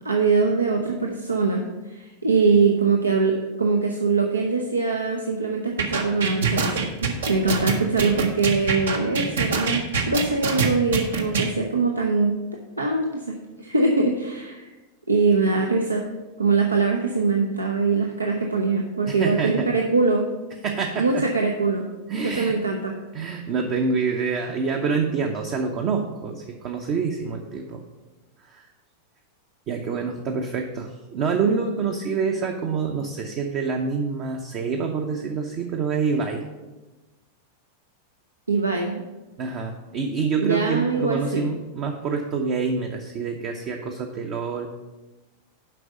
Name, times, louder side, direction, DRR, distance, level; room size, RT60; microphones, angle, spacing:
voice 1, 0.0-12.3 12.8-14.7 15.1-16.1 16.4-20.3 21.0-21.8 22.2-22.9 38.5-39.0 40.4-41.4, right 4 dB, 80° right, 2 dB, 0.7 m, -22 dB
sound 1, 5.8-11.5, right 5 dB, 65° right, 1.1 m, -24 dB
voice 2, 19.1-19.7 20.6-21.2 22.1-22.6 23.1-27.8 28.4-28.7 29.7-36.4 39.4-44.7, right 5 dB, 40° right, 3 dB, 0.8 m, -26 dB
7.7 x 5.3 x 6.6 m, 1.1 s
figure-of-eight pair, 90°, 0 cm